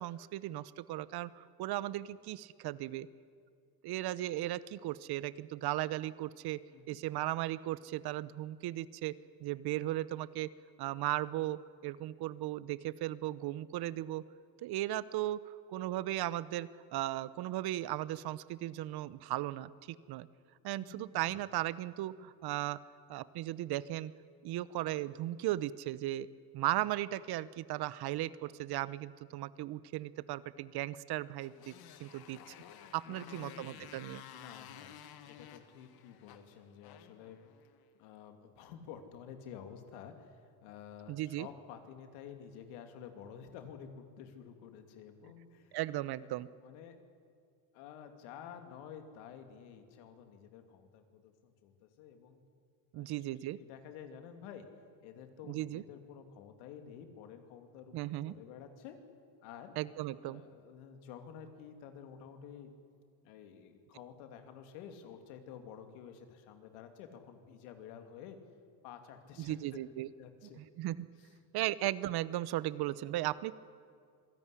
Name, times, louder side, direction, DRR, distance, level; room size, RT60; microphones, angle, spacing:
voice 1, 0.0-3.1 3.8-6.6 6.9-10.5 10.8-14.2 14.6-20.3 20.6-22.8 23.1-24.1 24.4-26.3 26.5-31.7 32.0-32.4 32.9-34.2 41.1-41.5 45.7-46.5 52.9-53.6 55.5-55.8 57.9-58.3 59.8-60.4 69.4-70.1 70.6-71.1 71.5-73.5, right 15 dB, 55° right, 18 dB, 0.9 m, -36 dB
voice 2, 6.7-7.0 20.8-21.4 33.1-33.9 34.3-35.0 35.2-37.4 38.0-45.8 46.1-47.0 47.7-52.4 52.9-53.2 53.6-54.7 55.0-58.0 58.3-59.0 59.4-59.7 60.2-62.7 63.2-68.4 68.8-69.6 70.2-70.6 71.2-71.3, left 8 dB, 85° left, 7 dB, 2.8 m, -51 dB
Motorcycle, 31.3-37.8, left 10 dB, 55° left, 1.9 m, -53 dB
26.0 x 16.5 x 10.0 m, 2.2 s
supercardioid pair, 105°, 44 cm